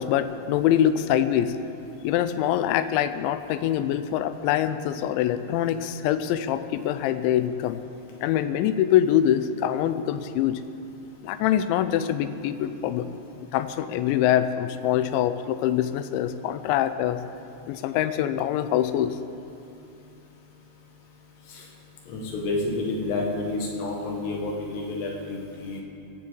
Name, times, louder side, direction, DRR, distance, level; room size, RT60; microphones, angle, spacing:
voice 1, 0.0-1.6 2.0-7.8 8.2-10.6 11.2-13.2 13.5-17.2 17.7-19.2, left 11 dB, 90° left, 12 dB, 2.9 m, -24 dB
voice 2, 22.1-25.8, left 2 dB, 70° left, 0 dB, 3.6 m, -29 dB
16.5 x 7.5 x 8.3 m, 2.7 s
omnidirectional pair, 5.2 m